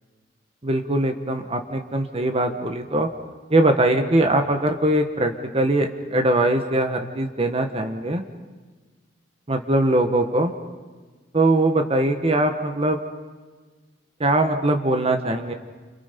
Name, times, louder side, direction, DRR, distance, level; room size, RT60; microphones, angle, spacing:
voice 1, 0.6-3.1 3.5-8.2 9.5-10.5 11.3-13.0 14.2-15.5, right 1 dB, 30° right, 5 dB, 1.5 m, -21 dB
29.5 x 27.5 x 5.3 m, 1.3 s
head